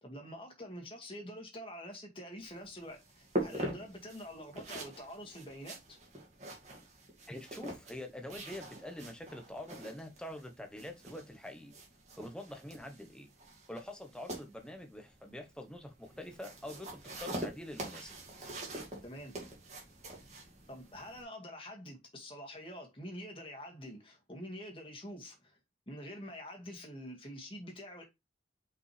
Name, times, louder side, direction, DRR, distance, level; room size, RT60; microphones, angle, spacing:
voice 1, 0.0-6.0 19.0-19.4 20.7-25.6 25.9-28.0, equal, 30° left, 1.9 m, -46 dB
sound 1, 2.4-21.2, right 1 dB, 40° right, 2.2 m, -44 dB
voice 2, 7.3-11.7 12.2-13.3 13.7-18.1, left 1 dB, 5° left, 1.0 m, -45 dB
5.6 x 5.3 x 3.2 m
head